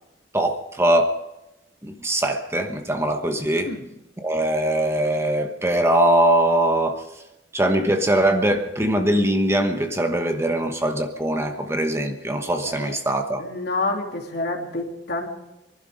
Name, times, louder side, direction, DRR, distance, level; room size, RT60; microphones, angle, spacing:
voice 1, 0.3-1.2 1.8-3.7 4.2-7.0 7.5-13.4, right 1 dB, 15° right, 6 dB, 1.1 m, -21 dB
voice 2, 13.4-15.3, left 2 dB, 65° left, 1 dB, 3.0 m, -28 dB
24.0 x 11.5 x 5.0 m, 0.95 s
head